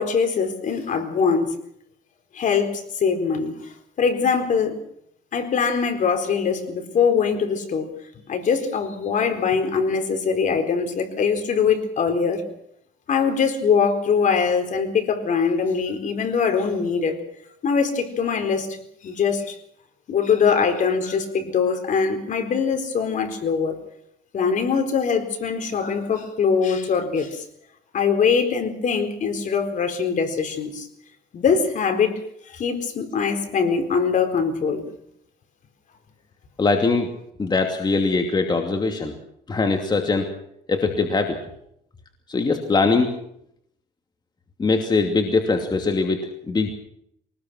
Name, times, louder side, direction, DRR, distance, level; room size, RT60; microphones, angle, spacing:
voice 1, 0.0-1.5 2.3-4.8 5.3-7.9 8.3-12.4 13.1-17.2 17.6-18.8 19.0-19.6 20.1-23.8 24.3-27.4 27.9-30.9 31.3-32.2 32.5-34.9, left 6 dB, 50° left, 7 dB, 4.3 m, -22 dB
voice 2, 36.6-37.1 37.4-39.1 39.5-40.3 40.7-41.4 42.3-43.1 44.6-46.8, left 3 dB, 25° left, 4 dB, 2.7 m, -21 dB
23.5 x 20.0 x 6.2 m, 0.71 s
cardioid pair, 110°, 17 cm